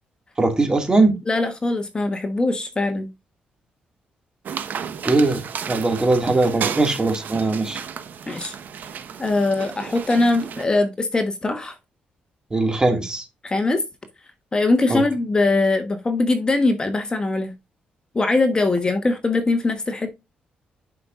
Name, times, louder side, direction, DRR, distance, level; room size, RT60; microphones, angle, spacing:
voice 1, 0.4-1.2 5.0-7.8 12.5-13.2 14.9-15.0, right 2 dB, 20° right, 2.1 m, -20 dB
voice 2, 1.3-3.1 8.3-8.5 9.2-11.7 13.4-13.8 14.5-17.5 18.1-20.1, left 2 dB, 25° left, 1.2 m, -21 dB
sound 1, 4.5-10.7, right 7 dB, 65° right, 1.1 m, -33 dB
10.5 x 5.3 x 2.5 m
cardioid pair, 95°, 3 cm